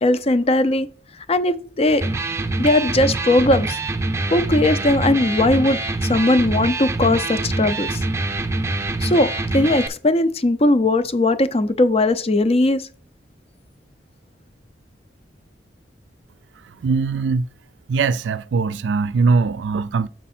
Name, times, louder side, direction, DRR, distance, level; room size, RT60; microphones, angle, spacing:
voice 1, 0.0-0.9 1.3-2.0 2.6-3.8 4.3-5.8 6.1-8.0 9.0-9.3 9.5-12.8, left 2 dB, 35° left, 0.5 m, -18 dB
Electric guitar, 1.9-9.9, right 2 dB, 15° right, 0.7 m, -25 dB
voice 2, 16.7-17.5 17.9-20.1, right 4 dB, 80° right, 0.4 m, -21 dB
7.2 x 4.6 x 4.3 m
head